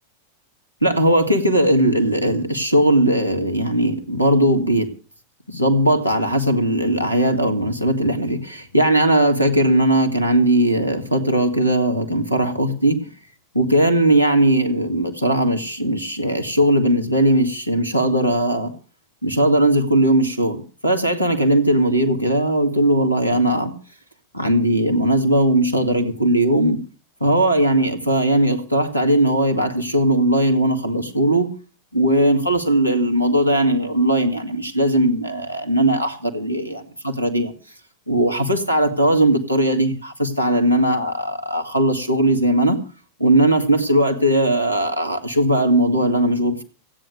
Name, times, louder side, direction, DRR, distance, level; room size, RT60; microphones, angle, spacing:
voice 1, 0.8-4.9 5.5-13.0 13.5-18.7 19.2-23.7 24.3-26.8 27.2-31.5 31.9-37.5 38.1-42.8 43.2-46.6, right 1 dB, 90° left, 7 dB, 2.0 m, -18 dB
16.0 x 9.2 x 6.7 m, 0.38 s
figure-of-eight pair, 90°, 0 cm